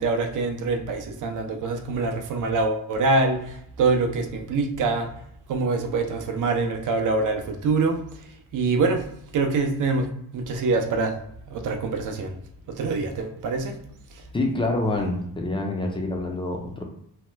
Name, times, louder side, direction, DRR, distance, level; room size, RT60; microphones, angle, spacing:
voice 1, 0.0-3.4 3.8-5.1 5.5-8.0 8.5-9.0 9.3-10.1 10.3-11.1 11.5-12.3 12.7-13.7, right 3 dB, 50° right, 4 dB, 0.6 m, -24 dB
voice 2, 14.3-16.8, left 2 dB, 15° left, 2 dB, 0.3 m, -26 dB
2.8 x 2.1 x 3.2 m, 0.73 s
cardioid pair, 145°, 39 cm